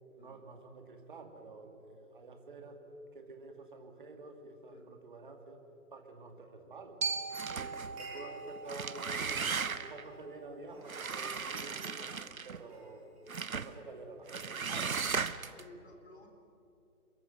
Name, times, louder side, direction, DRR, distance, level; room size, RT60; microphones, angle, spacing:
voice 1, 0.1-2.8 3.1-5.6 5.9-7.0 7.5-11.8 12.4-13.1 13.5-15.2, right 3 dB, 35° right, 4 dB, 2.4 m, -49 dB
Glockenspiel, 7.0-11.1, right 5 dB, 90° right, 2.8 m, -41 dB
sound 1, 7.3-8.0 8.6-10.0 10.9-12.6 13.3-13.7 14.3-15.6, right 5 dB, 65° right, 1.1 m, -37 dB
voice 2, 7.5-8.0 12.0-12.3 15.5-16.3, left 2 dB, 45° left, 3 dB, 4.2 m, -56 dB
sound 2, 7.6-8.6 8.9-10.2 10.6-13.3, right 2 dB, 10° right, 5.2 m, -55 dB
28.0 x 23.0 x 6.7 m, 2.8 s
figure-of-eight pair, 165°, 46 cm